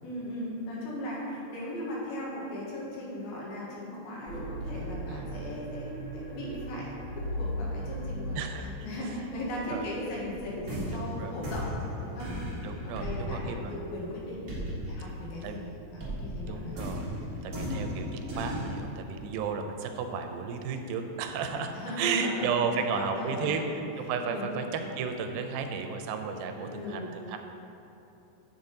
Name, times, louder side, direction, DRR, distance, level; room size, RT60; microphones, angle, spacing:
voice 1, 0.0-8.4 8.8-11.7 12.0-12.3 12.8-14.4 14.8-15.7 15.9-16.8 17.6-17.8 21.7-23.5 24.3-24.5 26.5-27.1, left 1 dB, 80° left, -5 dB, 3.4 m, -37 dB
sound 1, 4.3-11.0, equal, 55° right, 1.5 m, -38 dB
voice 2, 8.4-8.9 9.7-9.9 10.9-11.4 12.6-13.7 14.4-14.6 15.4-15.6 16.5-17.1 17.4-23.6 24.0-27.4, right 6 dB, 85° right, 5 dB, 2.4 m, -33 dB
sound 2, 10.4-15.6 16.0-18.7, equal, 70° right, 0.7 m, -36 dB
7.9 x 7.2 x 3.9 m, 2.9 s
omnidirectional pair, 4.2 m